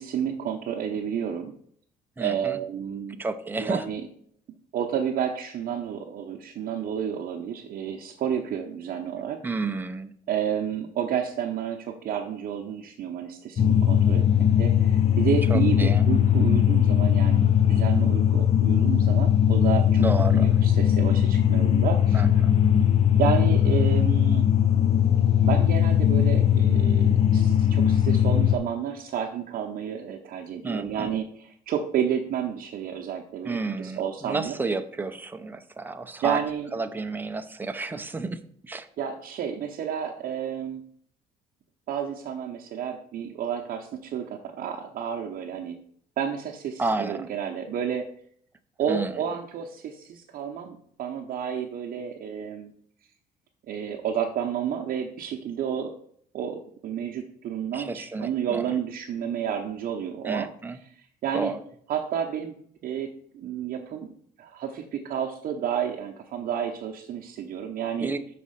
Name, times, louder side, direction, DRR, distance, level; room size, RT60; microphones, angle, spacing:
voice 1, 0.0-1.5 2.2-3.2 3.6-4.0 4.7-9.4 10.3-14.2 14.6-20.0 20.3-22.2 23.2-24.5 25.4-34.6 36.2-36.7 39.0-40.8 41.9-45.8 46.2-48.1 48.8-52.7 53.7-55.9 56.3-60.5 61.0-61.5 61.9-62.5 62.8-64.1 64.4-68.1, right 8 dB, 55° right, 1 dB, 0.7 m, -30 dB
voice 2, 2.2-2.6 3.2-3.8 9.4-10.1 15.5-16.0 20.0-20.5 22.1-22.6 30.6-31.1 33.4-36.4 36.7-38.4 38.6-38.9 46.8-47.3 48.9-49.1 57.7-58.6 60.2-60.8 61.3-61.6 68.0-68.2, right 3 dB, 10° right, 6 dB, 0.6 m, -31 dB
sound 1, 13.6-28.6, left 9 dB, 40° left, 0.4 m, -20 dB
6.2 x 4.2 x 5.6 m, 0.64 s
cardioid pair, 110°, 17 cm